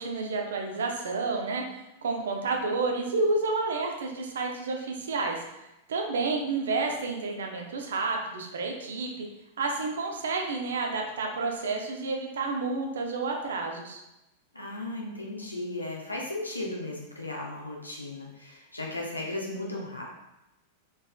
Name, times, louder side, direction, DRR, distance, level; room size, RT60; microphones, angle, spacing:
voice 1, 0.0-1.6 2.0-5.4 5.9-9.3 9.6-14.0, right 3 dB, 65° right, 2 dB, 0.6 m, -30 dB
voice 2, 14.5-20.0, left 2 dB, 90° left, -2 dB, 0.8 m, -36 dB
4.0 x 3.6 x 2.2 m, 0.91 s
figure-of-eight pair, 95°, 0 cm